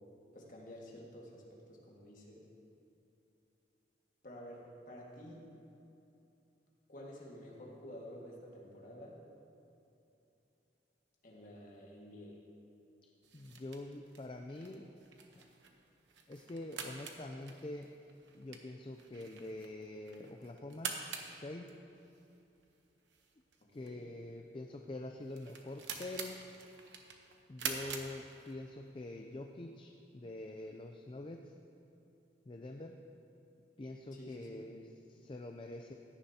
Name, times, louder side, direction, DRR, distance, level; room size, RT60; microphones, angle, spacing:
voice 1, 0.3-2.5 4.2-5.5 6.9-9.2 11.2-12.4 23.8-24.0 34.1-34.6, equal, 45° left, -3 dB, 1.8 m, -51 dB
sound 1, 13.2-28.9, right 6 dB, 85° right, 1.0 m, -47 dB
voice 2, 13.3-14.9 15.3-15.5 16.3-17.9 18.3-21.0 21.3-21.7 23.7-26.4 27.5-31.5 32.5-33.0 33.8-35.9, left 2 dB, 30° left, 3 dB, 0.4 m, -45 dB
16.0 x 10.0 x 2.8 m, 2.9 s
head